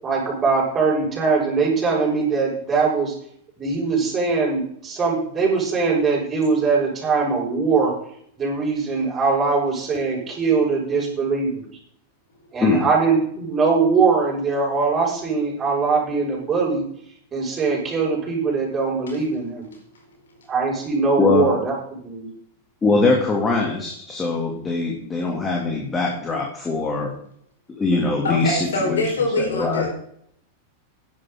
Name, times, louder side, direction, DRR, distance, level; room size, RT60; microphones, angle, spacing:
voice 1, 0.0-3.1 3.6-7.9 8.4-11.6 12.5-16.8 17.3-19.7 20.5-22.3, right 4 dB, 20° right, -3 dB, 6.7 m, -21 dB
voice 2, 21.2-21.5 22.8-27.1 27.8-29.0 29.4-29.8, left 3 dB, 15° left, -1 dB, 2.9 m, -22 dB
voice 3, 28.2-29.9, left 2 dB, 65° left, 2 dB, 4.8 m, -24 dB
16.0 x 11.0 x 4.0 m, 0.66 s
figure-of-eight pair, 90°, 0 cm